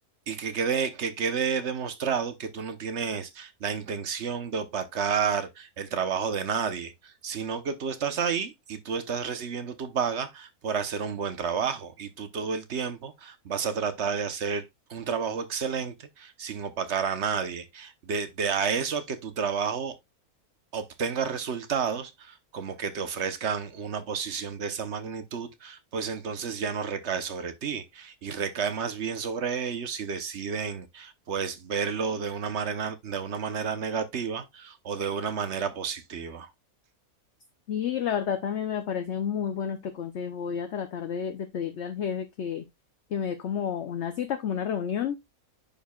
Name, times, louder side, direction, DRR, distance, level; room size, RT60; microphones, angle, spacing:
voice 1, 0.3-20.0 20.7-36.5, right 6 dB, 50° right, 1.2 m, -31 dB
voice 2, 37.7-42.6 43.1-45.2, left 8 dB, 55° left, 0.9 m, -30 dB
10.5 x 4.6 x 2.3 m
omnidirectional pair, 1.6 m